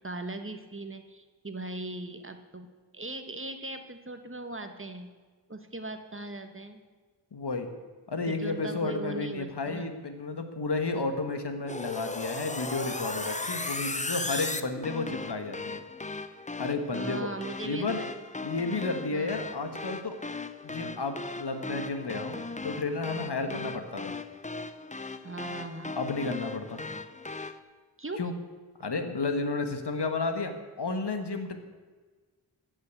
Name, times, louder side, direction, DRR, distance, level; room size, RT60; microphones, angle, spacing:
voice 1, 0.0-2.7 2.9-5.1 5.5-6.8 8.3-9.9 16.9-18.1 19.1-19.4 23.5-23.8 25.2-26.0 28.0-28.3, right 2 dB, 30° right, 7 dB, 1.3 m, -39 dB
voice 2, 7.3-7.7 8.1-15.8 16.6-17.3 17.6-18.0 18.4-20.2 20.6-24.1 26.0-26.8 28.2-28.3 28.8-31.6, left 3 dB, 65° left, 7 dB, 1.5 m, -32 dB
sound 1, 11.7-27.6, left 3 dB, 15° left, 0.7 m, -37 dB
14.5 x 6.4 x 8.3 m, 1.4 s
wide cardioid pair, 55°, 44 cm